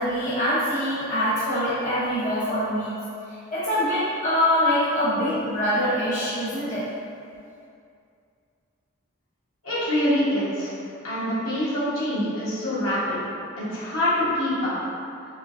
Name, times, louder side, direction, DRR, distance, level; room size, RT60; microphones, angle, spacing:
voice 1, 0.0-2.9 3.3-6.8, equal, 35° left, -11 dB, 0.9 m, -24 dB
voice 2, 9.6-10.7 11.0-13.2 13.6-14.7, left 1 dB, 75° left, -10 dB, 1.3 m, -25 dB
4.8 x 3.1 x 2.6 m, 2.4 s
head